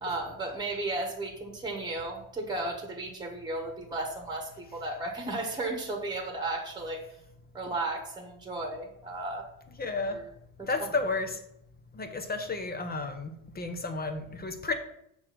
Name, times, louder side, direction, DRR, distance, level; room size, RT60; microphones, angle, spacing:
voice 1, 0.0-7.0 7.5-9.4 10.1-10.2 10.6-10.7, right 2 dB, 10° right, 4 dB, 1.2 m, -34 dB
voice 2, 9.8-10.2 10.6-11.4 11.9-14.7, left 3 dB, 20° left, 6 dB, 0.6 m, -32 dB
7.0 x 3.2 x 6.0 m, 0.75 s
cardioid pair, 130°, 49 cm